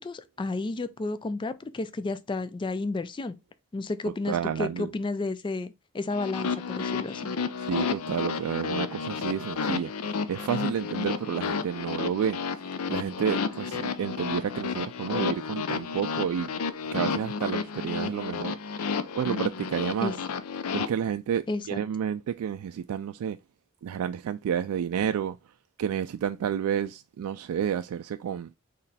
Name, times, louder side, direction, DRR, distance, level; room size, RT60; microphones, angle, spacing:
voice 1, 0.0-3.4 3.7-7.2 20.0-20.1 21.5-21.8, left 3 dB, 20° left, 0.3 m, -32 dB
voice 2, 4.3-4.9 7.6-12.4 12.9-16.5 16.9-20.1 20.7-23.4 23.8-25.4 25.8-28.5, right 8 dB, 85° right, 0.3 m, -30 dB
sound 1, 6.1-20.9, left 5 dB, 80° left, 0.6 m, -31 dB
4.1 x 3.1 x 4.1 m
head